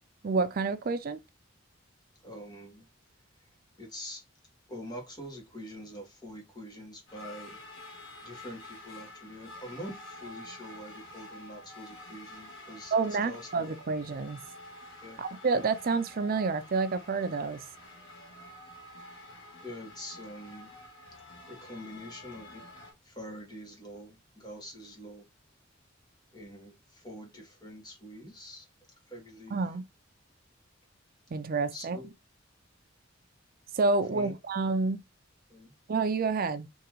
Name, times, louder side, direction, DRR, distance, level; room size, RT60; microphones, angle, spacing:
voice 1, 0.2-1.2 12.9-14.4 15.2-17.6 29.5-29.8 31.3-32.0 33.7-35.0 35.9-36.7, right 4 dB, 50° right, 0.5 m, -29 dB
voice 2, 2.2-2.9 3.4-3.5 3.8-4.2 4.7-7.6 8.2-12.9 13.2-13.5 15.0-15.2 19.6-20.7 21.5-22.6 23.0-25.2 26.3-28.7 29.1-29.6 31.7-32.1 34.1-34.3 35.5-35.7, equal, 20° left, 1.4 m, -45 dB
sound 1, 7.1-22.9, left 1 dB, 70° left, 1.7 m, -49 dB
3.6 x 2.8 x 3.0 m
head